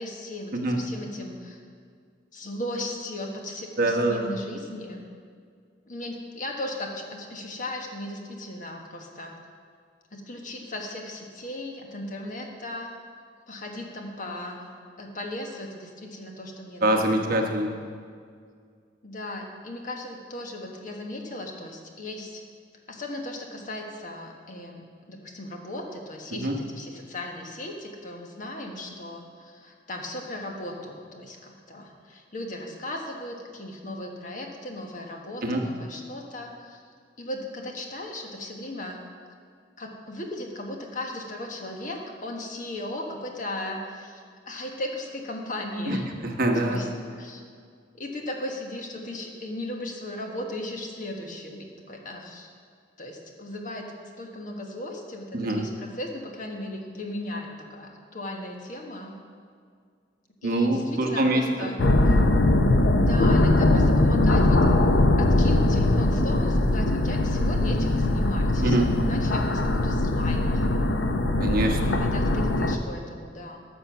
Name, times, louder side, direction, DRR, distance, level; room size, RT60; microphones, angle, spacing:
voice 1, 0.0-1.6 2.3-5.1 5.9-9.3 10.1-13.0 13.5-14.7 15.0-17.2 19.0-22.4 22.9-24.8 25.1-36.8 37.2-39.0 39.8-46.0 46.5-46.9 47.2-47.4 48.0-52.5 53.0-53.8 54.2-59.2 60.4-61.8 62.0-62.2 63.0-64.6 65.2-70.6 71.8-73.6, left 1 dB, 45° left, 2 dB, 1.4 m, -36 dB
voice 2, 3.8-4.3 16.8-17.8 26.4-26.5 35.4-35.6 45.9-46.0 46.2-46.8 55.3-55.6 60.4-61.7 68.6-68.9 71.4-72.0, right 1 dB, 55° right, 2 dB, 1.1 m, -24 dB
sound 1, 61.8-72.8, left 1 dB, 85° left, 0.7 m, -21 dB
13.5 x 6.9 x 5.9 m, 2.1 s
head